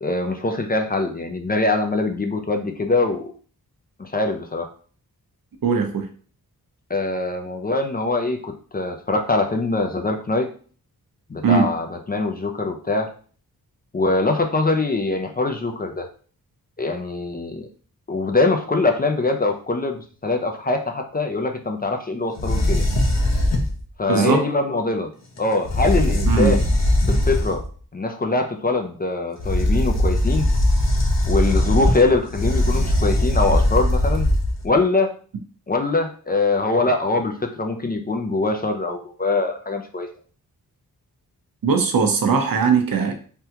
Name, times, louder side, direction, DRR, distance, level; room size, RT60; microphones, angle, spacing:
voice 1, 0.0-3.3 4.0-4.7 6.9-10.5 11.3-13.1 13.9-16.0 16.8-17.7 18.1-22.9 24.0-25.1 25.4-26.7 27.0-27.6 27.9-30.5 31.3-34.3 34.6-35.1 35.7-40.1, left 3 dB, 25° left, 4 dB, 0.5 m, -23 dB
voice 2, 5.6-6.1 11.4-11.7 24.1-24.4 26.3-26.6 41.6-43.1, right 5 dB, 70° right, 5 dB, 0.7 m, -19 dB
sound 1, 22.4-23.8 25.4-25.5 25.6-27.7 29.4-34.8, left 1 dB, 45° left, 0.8 m, -20 dB
3.5 x 2.3 x 2.8 m, 0.43 s
cardioid pair, 65°, 36 cm